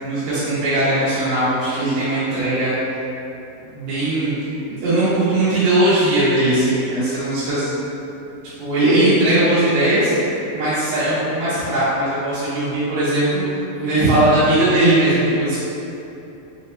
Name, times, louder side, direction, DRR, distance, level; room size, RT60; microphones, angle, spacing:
voice 1, 0.0-3.0 3.6-4.3 4.7-7.7 8.6-10.1 10.5-13.4 13.8-15.6, right 1 dB, 75° right, -15 dB, 2.1 m, -19 dB
7.5 x 2.9 x 2.2 m, 2.8 s
omnidirectional pair, 5.4 m